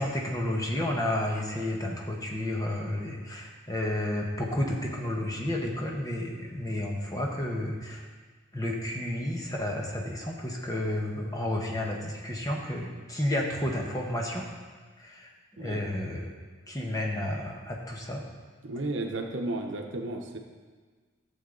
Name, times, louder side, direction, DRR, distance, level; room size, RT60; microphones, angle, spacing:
voice 1, 0.0-8.0 8.5-14.5 15.0-16.2 16.7-18.2, left 1 dB, 20° left, -1 dB, 1.2 m, -31 dB
voice 2, 18.6-20.4, right 2 dB, 70° right, 3 dB, 0.9 m, -33 dB
13.0 x 7.2 x 3.9 m, 1.5 s
head